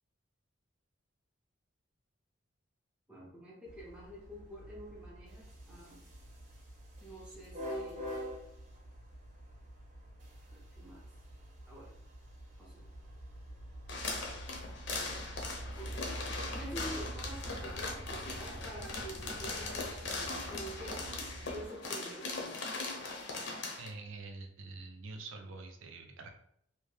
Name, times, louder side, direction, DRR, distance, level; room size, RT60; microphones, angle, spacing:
voice 1, 3.1-6.0 7.0-8.1 10.5-11.0 11.7-11.9 12.6-12.9 15.8-16.0 16.5-22.7, right 1 dB, 5° right, -5 dB, 0.5 m, -48 dB
sound 1, 3.7-21.7, equal, 35° right, 0.8 m, -46 dB
sound 2, 13.9-23.9, left 3 dB, 60° left, 0.5 m, -40 dB
voice 2, 23.8-26.3, right 3 dB, 70° right, 5 dB, 0.4 m, -46 dB
2.7 x 2.1 x 3.2 m, 0.69 s
head